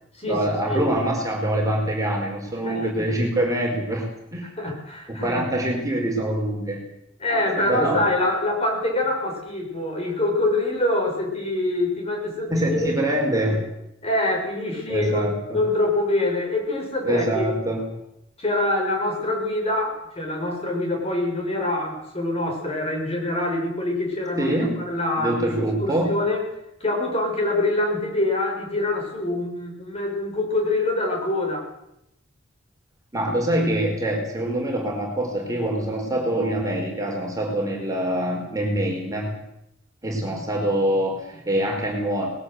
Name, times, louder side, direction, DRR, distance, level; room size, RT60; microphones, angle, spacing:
voice 1, 0.3-4.5 5.1-6.8 7.3-8.1 12.5-13.6 14.9-15.6 17.0-17.9 24.4-24.8 25.2-26.2 33.1-39.3 40.0-42.3, right 1 dB, 15° right, 1 dB, 4.7 m, -25 dB
voice 2, 4.6-5.4 7.2-13.3 14.0-17.5 18.4-24.6 24.9-26.4 26.8-31.6, left 2 dB, 30° left, 1 dB, 6.9 m, -25 dB
20.5 x 17.5 x 8.2 m, 0.81 s
head